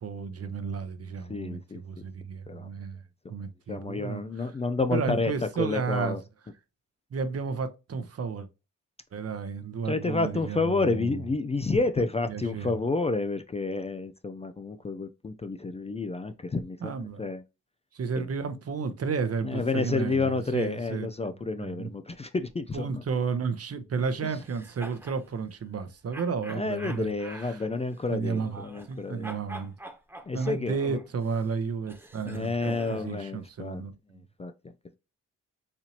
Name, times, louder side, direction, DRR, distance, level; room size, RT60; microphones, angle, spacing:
voice 1, 0.0-1.6 1.8-3.0 3.3-4.2 4.9-6.2 7.1-8.5 9.1-11.1 12.3-12.7 16.8-17.2 17.9-21.1 21.6-21.9 22.7-27.1 28.1-29.7 30.3-33.9, right 5 dB, 50° right, 0.7 m, -32 dB
voice 2, 1.2-2.0 2.5-2.7 3.7-6.2 9.8-16.9 17.2-17.4 18.1-18.3 19.4-22.9 24.2-24.4 26.5-29.3 30.3-31.0 32.3-33.8 34.1-34.7, left 3 dB, 20° left, 0.4 m, -30 dB
sound 1, 24.3-25.2 26.1-29.0 29.2-33.2, right 1 dB, 5° right, 1.1 m, -45 dB
4.2 x 2.7 x 2.9 m
supercardioid pair, 50°, 32 cm